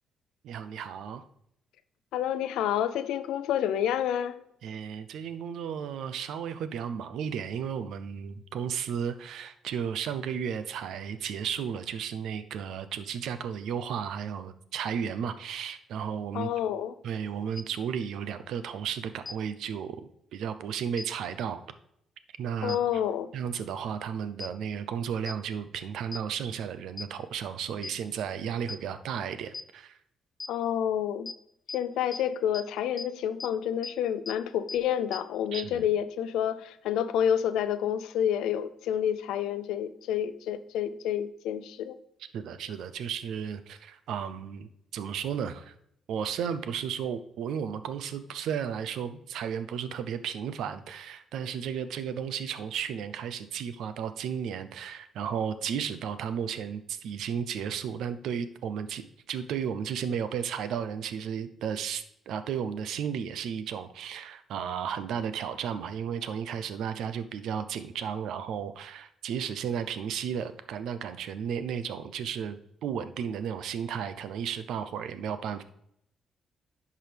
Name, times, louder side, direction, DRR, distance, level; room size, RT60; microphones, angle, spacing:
voice 1, 0.4-1.2 4.6-16.5 17.0-21.6 22.4-22.8 23.3-30.0 35.5-35.8 42.3-45.7 46.1-59.0 59.3-75.6, right 8 dB, 80° right, 0.6 m, -34 dB
voice 2, 2.1-4.4 16.3-16.9 22.6-23.3 30.5-31.3 31.7-42.0, left 9 dB, 90° left, 0.5 m, -29 dB
sound 1, 17.6-17.7 19.3-19.4 21.0-21.1 22.7-22.8 24.4-24.5 25.3-25.4 26.1-26.2 27.0-27.1 27.8-27.9 28.7-28.8 29.5-29.6 30.4-30.5 31.3-31.4 31.7-31.8 32.1-32.2 32.5-32.6 33.0-33.1 33.4-33.5 33.8-33.9 34.3-34.4 34.7-34.8 35.1-35.2 35.5-35.6, left 4 dB, 30° left, 0.4 m, -36 dB
10.5 x 4.8 x 3.4 m
cardioid pair, 90°, 0 cm